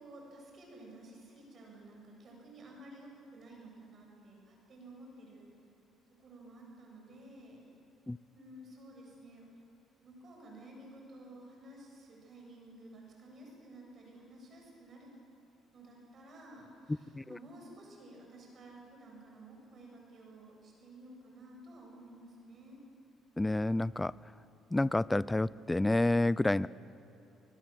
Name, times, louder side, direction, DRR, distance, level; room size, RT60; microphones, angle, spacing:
voice 1, 0.0-5.5 6.2-7.6 8.3-9.5 10.0-15.1 15.7-22.8, right 1 dB, 50° right, 0 dB, 7.7 m, -53 dB
voice 2, 23.4-24.1 24.7-26.7, left 2 dB, 15° left, 21 dB, 0.5 m, -29 dB
24.0 x 20.5 x 7.7 m, 2.8 s
supercardioid pair, 70°, 0 cm